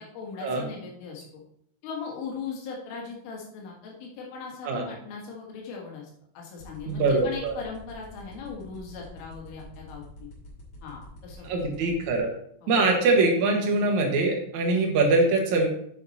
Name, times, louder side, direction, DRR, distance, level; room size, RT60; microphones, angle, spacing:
voice 1, 0.0-1.4 1.8-6.1 6.4-10.3 10.8-11.9 12.6-12.7, left 5 dB, 90° left, -1 dB, 4.3 m, -39 dB
sound 1, 6.6-12.2, left 1 dB, 40° left, 3.2 m, -46 dB
voice 2, 6.9-7.6 11.4-12.3 12.7-15.7, right 3 dB, 70° right, 1 dB, 1.8 m, -23 dB
8.6 x 6.5 x 4.2 m, 0.70 s
omnidirectional pair, 5.5 m